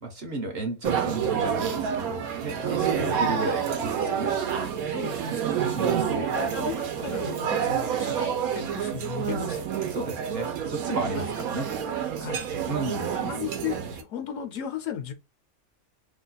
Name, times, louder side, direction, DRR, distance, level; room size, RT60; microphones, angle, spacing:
voice 1, 0.0-4.4 5.7-6.3 9.9-11.7 12.7-13.2, right 2 dB, 50° right, 0.9 m, -33 dB
sound 1, 0.8-14.0, right 8 dB, 85° right, 1.1 m, -28 dB
voice 2, 2.9-3.2 4.9-5.4 6.1-9.6 11.1-11.2 12.2-12.4 13.1-15.1, left 9 dB, 70° left, 0.9 m, -35 dB
2.9 x 2.2 x 3.9 m
omnidirectional pair, 1.5 m